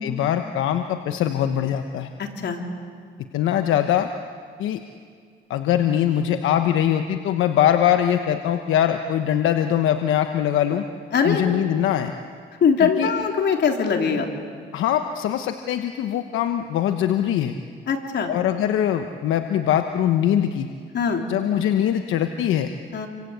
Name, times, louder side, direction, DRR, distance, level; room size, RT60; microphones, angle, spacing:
voice 1, 0.0-2.1 3.3-4.1 4.6-4.8 5.5-10.8 11.2-12.1 12.8-13.1 14.7-17.5 18.3-20.7 21.3-22.7, left 10 dB, 85° left, 7 dB, 1.1 m, -22 dB
voice 2, 2.2-2.6 11.1-11.4 12.6-14.3 17.9-18.3 20.9-21.2 22.9-23.1, left 6 dB, 60° left, 3 dB, 3.6 m, -21 dB
28.5 x 25.5 x 8.2 m, 2.1 s
cardioid pair, 90°, 20 cm